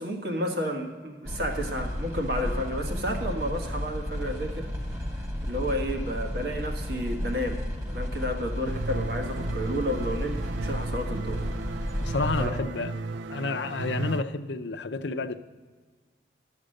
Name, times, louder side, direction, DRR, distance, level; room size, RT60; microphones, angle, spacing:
voice 1, 0.0-4.7 5.1-11.4 11.7-12.1 12.4-12.5, equal, 60° right, 1.5 m, -32 dB
sound 1, 1.2-12.6, equal, 15° right, 1.2 m, -33 dB
sound 2, 8.7-14.2, right 3 dB, 85° right, 0.4 m, -34 dB
voice 2, 12.0-12.9 13.3-15.4, left 3 dB, 80° left, 0.6 m, -30 dB
12.5 x 7.3 x 6.4 m
head